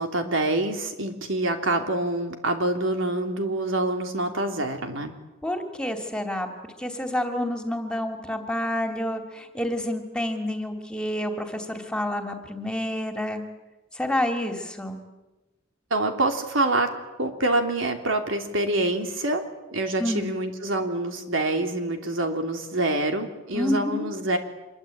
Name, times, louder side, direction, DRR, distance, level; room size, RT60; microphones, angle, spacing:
voice 1, 0.0-5.1 15.9-16.9 17.2-19.4 19.7-24.4, right 2 dB, 85° right, 5 dB, 3.2 m, -26 dB
voice 2, 5.4-6.5 6.8-13.4 13.9-15.0 20.0-20.3 23.5-24.1, left 1 dB, 5° left, 5 dB, 2.7 m, -28 dB
26.0 x 23.0 x 8.8 m, 1.1 s
head